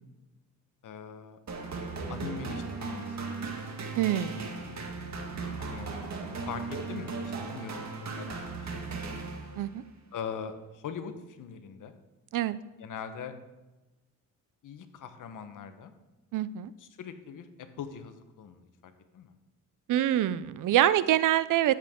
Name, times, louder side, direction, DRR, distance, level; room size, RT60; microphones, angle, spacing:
voice 1, 0.8-1.4 2.1-3.2 5.6-5.9 6.4-7.9 8.2-9.2 10.1-12.0 12.8-13.3 14.6-15.9 16.8-19.3, left 7 dB, 70° left, 9 dB, 1.1 m, -41 dB
sound 1, 1.5-9.8, right 4 dB, 55° right, 1.8 m, -37 dB
voice 2, 4.0-4.4 9.6-9.8 12.3-12.6 16.3-16.7 19.9-21.7, right 12 dB, 70° right, 16 dB, 0.6 m, -25 dB
13.0 x 7.4 x 3.7 m, 1.1 s
cardioid pair, 85°, 32 cm